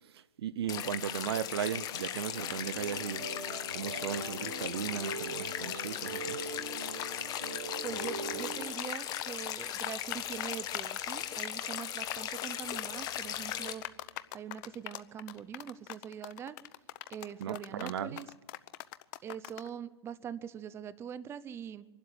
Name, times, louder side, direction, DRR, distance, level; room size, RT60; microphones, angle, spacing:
voice 1, 0.1-3.2 3.7-6.4 17.4-18.2, right 9 dB, 70° right, 0.9 m, -36 dB
sound 1, 0.7-13.7, left 10 dB, 30° left, 1.4 m, -38 dB
sound 2, 2.4-8.7, right 3 dB, 90° right, 5.9 m, -42 dB
sound 3, 6.9-19.7, left 17 dB, 45° left, 0.8 m, -41 dB
voice 2, 7.8-13.8 14.3-16.6 17.1-18.3 19.2-21.9, right 8 dB, 20° right, 0.6 m, -43 dB
24.0 x 12.0 x 9.9 m
hypercardioid pair, 130°, 14 cm